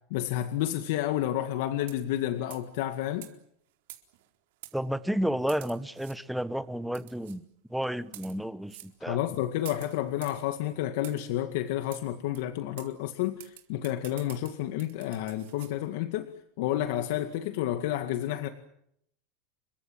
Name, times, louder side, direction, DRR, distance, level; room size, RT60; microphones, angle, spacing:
voice 1, 0.1-3.3 9.0-16.3 16.6-18.5, left 13 dB, 70° left, 2.1 m, -30 dB
sound 1, 1.8-2.2 2.5-2.7 3.2-3.3 3.9-4.3 4.6-4.8 5.5-6.2 6.9-7.4 8.0-8.4 8.7-8.9 9.6-10.4 11.0-11.3 11.9-12.0 12.3-12.4 12.8-12.9 13.4-15.7, right 16 dB, 75° right, 4.3 m, -47 dB
voice 2, 4.7-7.4 7.7-9.2, equal, ahead, 1.1 m, -31 dB
29.5 x 24.0 x 7.6 m
supercardioid pair, 150°, 0 cm